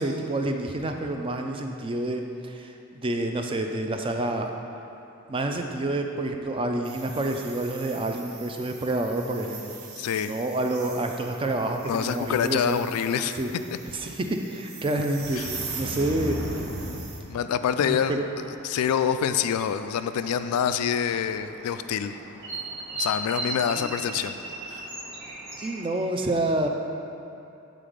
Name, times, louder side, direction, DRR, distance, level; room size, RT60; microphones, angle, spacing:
voice 1, 0.0-4.5 5.3-9.7 10.2-12.9 13.4-13.5 13.9-16.4 17.8-18.2 23.8-23.9 25.6-26.7, right 2 dB, 25° right, 4 dB, 0.4 m, -28 dB
sound 1, 6.8-17.2, right 2 dB, 75° right, 0.9 m, -39 dB
voice 2, 10.0-10.3 11.8-13.4 15.4-15.5 17.3-18.2 18.6-22.1 22.9-24.4 24.7-24.8, left 8 dB, 80° left, 14 dB, 0.3 m, -26 dB
sound 2, 17.4-25.8, right 2 dB, 50° right, 1.3 m, -38 dB
7.5 x 3.9 x 5.1 m, 2.8 s
head